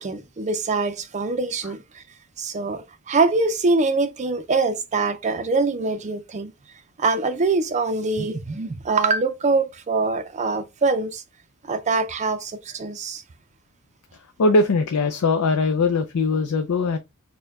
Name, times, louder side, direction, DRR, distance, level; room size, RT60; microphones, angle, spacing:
voice 1, 0.0-2.0 2.4-6.5 7.0-11.2 11.7-13.2, right 3 dB, 35° right, 0.4 m, -24 dB
voice 2, 14.4-17.0, left 3 dB, 80° left, 0.4 m, -20 dB
4.4 x 2.2 x 3.4 m
head